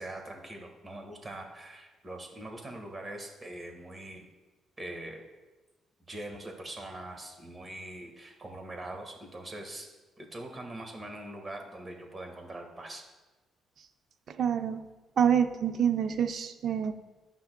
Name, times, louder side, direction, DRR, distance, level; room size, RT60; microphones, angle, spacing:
voice 1, 0.0-4.3 4.8-5.2 6.1-9.9 10.2-13.0, right 1 dB, 30° right, 3 dB, 1.5 m, -42 dB
voice 2, 14.3-14.8 15.2-16.9, right 8 dB, 60° right, 9 dB, 0.5 m, -27 dB
11.5 x 5.7 x 2.2 m, 1.1 s
cardioid pair, 90°, 0 cm